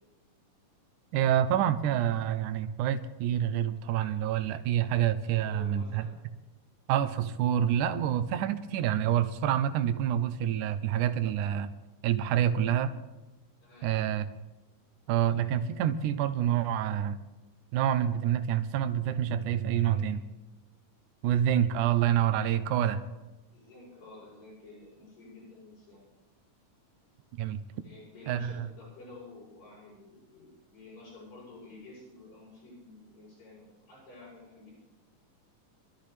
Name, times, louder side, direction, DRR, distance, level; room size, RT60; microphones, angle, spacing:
voice 1, 1.1-6.1 6.9-11.7 12.0-12.9 13.8-14.3 15.1-17.2 17.7-20.2 21.2-23.0 27.4-27.6 28.3-28.5, right 10 dB, 75° right, 10 dB, 2.2 m, -27 dB
voice 2, 5.2-6.1 13.6-13.9 19.7-20.0 23.5-26.0 27.8-34.7, left 2 dB, 90° left, -9 dB, 9.2 m, -51 dB
24.0 x 13.5 x 3.4 m, 1.1 s
omnidirectional pair, 3.9 m